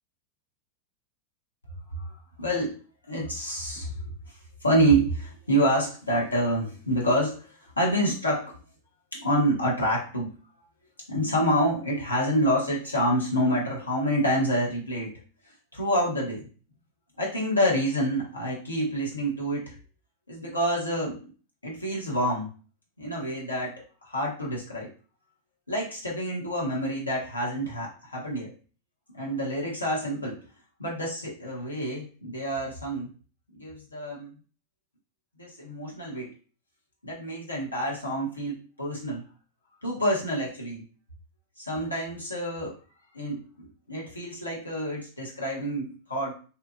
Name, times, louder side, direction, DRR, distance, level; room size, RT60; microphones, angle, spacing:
voice 1, 2.4-3.9 4.6-8.6 9.1-10.4 11.1-15.1 15.7-16.5 17.2-19.8 20.3-21.2 21.6-22.5 23.0-23.8 24.1-24.9 25.7-28.5 29.1-30.4 30.8-33.1 33.5-34.3 35.4-36.3 37.0-39.2 39.8-40.8 41.6-42.8 43.1-43.4 43.9-46.3, equal, 80° left, -4 dB, 0.7 m, -27 dB
2.7 x 2.3 x 2.6 m, 0.39 s
figure-of-eight pair, 90°, 0 cm